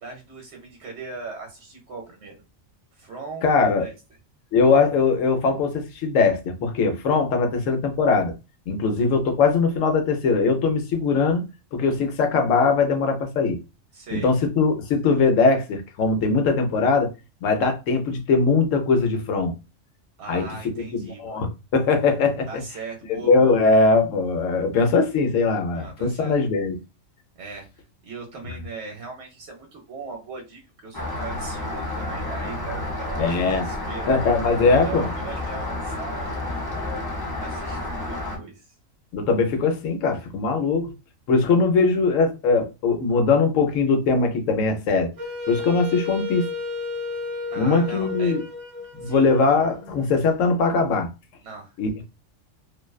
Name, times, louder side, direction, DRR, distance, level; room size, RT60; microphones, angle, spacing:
voice 1, 0.0-2.4 3.0-3.9 13.9-14.3 20.2-21.5 22.5-23.8 25.7-26.4 27.4-27.7 28.0-37.0 37.4-38.7 47.5-48.4 49.0-49.3 51.4-51.7, right 4 dB, 65° right, 0.9 m, -39 dB
voice 2, 3.4-3.9 4.5-8.3 8.7-11.4 11.7-13.6 14.1-17.1 17.4-19.5 20.3-21.5 21.7-22.5 23.1-26.8 33.2-33.7 34.1-35.1 39.1-40.9 41.3-45.1 45.5-46.5 47.6-48.4 49.0-51.1 51.8-52.0, left 4 dB, 75° left, 1.0 m, -21 dB
Rain, 30.9-38.4, left 2 dB, 30° left, 0.4 m, -30 dB
Wind instrument woodwind instrument, 45.2-50.1, left 4 dB, 40° right, 0.6 m, -33 dB
2.5 x 2.1 x 2.3 m
omnidirectional pair, 1.3 m